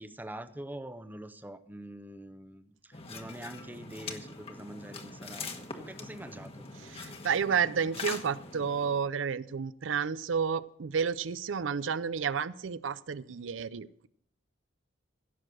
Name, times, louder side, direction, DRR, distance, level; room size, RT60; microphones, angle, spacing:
voice 1, 0.0-6.6, right 1 dB, 10° right, 11 dB, 0.7 m, -45 dB
sound 1, 2.9-9.1, left 4 dB, 30° left, 1.3 m, -43 dB
voice 2, 6.8-14.1, right 6 dB, 85° right, 17 dB, 0.5 m, -31 dB
16.0 x 6.6 x 6.2 m, 0.67 s
head